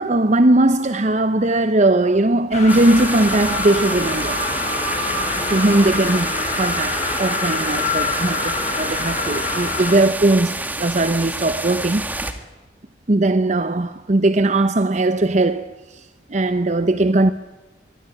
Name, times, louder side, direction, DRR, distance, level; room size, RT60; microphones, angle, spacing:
voice 1, 0.0-4.4 5.2-12.1 13.1-16.0 16.3-17.3, right 2 dB, 40° right, 0.8 m, -19 dB
sound 1, 2.5-10.0, left 3 dB, 40° left, 7.6 m, -25 dB
sound 2, 2.7-12.3, right 2 dB, 10° right, 2.1 m, -28 dB
24.5 x 23.0 x 8.8 m
head